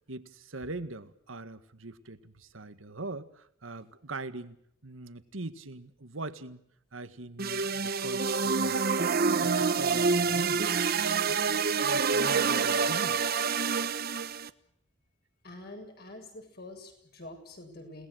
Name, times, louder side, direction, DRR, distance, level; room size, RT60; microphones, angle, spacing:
voice 1, 0.0-4.6 4.8-6.6 6.9-8.8 9.2-10.7 11.1-11.4 11.8-13.2, right 2 dB, 90° right, 11 dB, 1.8 m, -42 dB
sound 1, 7.4-14.5, right 5 dB, 50° right, 1.0 m, -27 dB
voice 2, 15.4-18.1, left 2 dB, 50° left, 4 dB, 7.9 m, -46 dB
30.0 x 19.5 x 6.5 m, 0.72 s
head